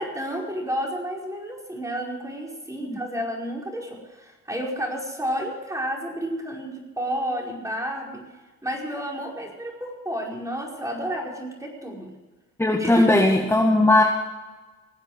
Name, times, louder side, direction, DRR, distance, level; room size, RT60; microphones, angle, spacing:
voice 1, 0.0-8.2 8.6-12.1 12.8-13.1, equal, 10° right, -1 dB, 5.1 m, -31 dB
voice 2, 12.6-14.0, left 2 dB, 10° left, 0 dB, 2.0 m, -18 dB
20.5 x 8.0 x 8.1 m, 1.2 s
cardioid pair, 90°, 30 cm